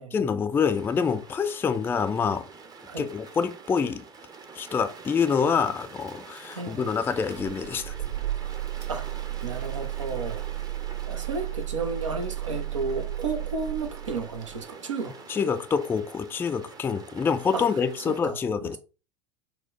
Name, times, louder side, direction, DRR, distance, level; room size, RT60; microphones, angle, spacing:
voice 1, 0.0-2.5 3.0-4.0 4.6-7.9 15.3-18.8, left 6 dB, 15° left, 0.3 m, -26 dB
sound 1, 0.5-18.2, right 4 dB, 25° right, 0.7 m, -46 dB
voice 2, 6.5-7.0 8.9-10.4 11.1-15.1 17.5-17.6 18.1-18.8, right 4 dB, 80° right, 0.8 m, -33 dB
sound 2, 7.3-14.7, right 14 dB, 55° right, 1.4 m, -34 dB
4.4 x 2.2 x 3.8 m
figure-of-eight pair, 80°, 16 cm